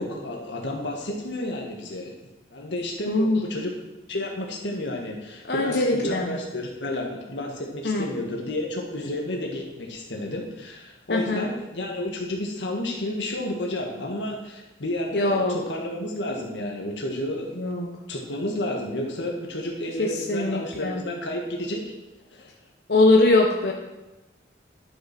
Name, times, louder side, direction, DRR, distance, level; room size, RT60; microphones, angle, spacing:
voice 1, 0.0-2.1 2.5-3.7 4.1-17.5 18.1-21.8 22.3-22.5, left 1 dB, 80° left, 0 dB, 1.7 m, -31 dB
voice 2, 3.0-3.5 5.4-6.4 7.8-8.1 11.1-11.5 15.1-15.6 17.6-18.0 20.0-21.0 22.9-23.7, left 2 dB, 60° left, 0 dB, 1.0 m, -22 dB
11.0 x 6.3 x 6.0 m, 1.0 s
head